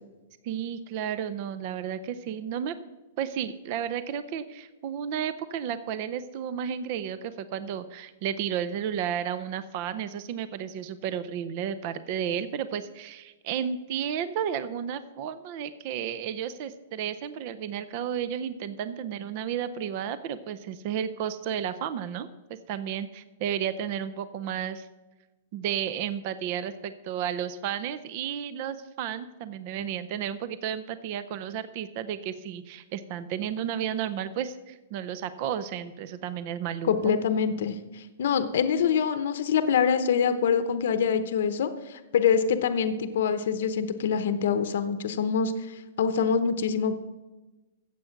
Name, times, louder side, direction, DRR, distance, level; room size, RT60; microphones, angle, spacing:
voice 1, 0.4-2.8 3.2-22.3 22.7-24.9 25.5-37.1, right 9 dB, 35° right, 14 dB, 0.5 m, -32 dB
voice 2, 36.8-47.0, left 7 dB, 60° left, 11 dB, 0.8 m, -25 dB
14.5 x 7.9 x 5.9 m, 1.1 s
hypercardioid pair, 175°, 0 cm